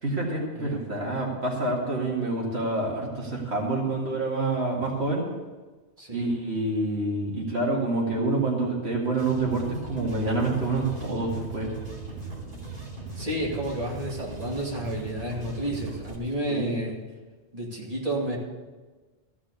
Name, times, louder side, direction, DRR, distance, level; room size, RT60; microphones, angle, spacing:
voice 1, 0.0-5.2 6.1-11.7 16.5-16.7, right 2 dB, 80° right, -2 dB, 2.4 m, -27 dB
voice 2, 0.5-0.9 6.0-6.3 13.2-17.0 17.5-18.4, right 1 dB, 35° right, -4 dB, 2.6 m, -31 dB
sound 1, 9.1-16.2, right 3 dB, 55° right, 3.0 m, -39 dB
14.5 x 6.0 x 8.4 m, 1.3 s
omnidirectional pair, 1.1 m